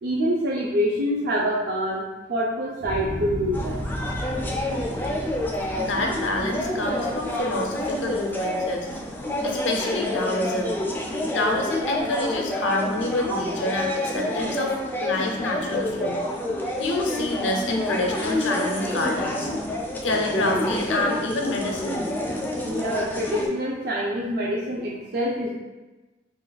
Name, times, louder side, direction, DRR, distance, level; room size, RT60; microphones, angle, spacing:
voice 1, 0.0-2.0 2.3-3.8 11.2-11.3 22.7-25.5, equal, 55° right, -5 dB, 0.4 m, -26 dB
sound 1, 2.8-9.1 9.6-10.1, equal, 80° right, 1.0 m, -35 dB
sound 2, 3.5-23.5, left 1 dB, 10° left, 0.3 m, -28 dB
voice 2, 5.8-8.9 9.4-10.8 11.3-16.2 16.8-19.5 20.0-22.1, left 2 dB, 70° left, 1 dB, 0.5 m, -27 dB
2.4 x 2.2 x 3.9 m, 1.1 s
head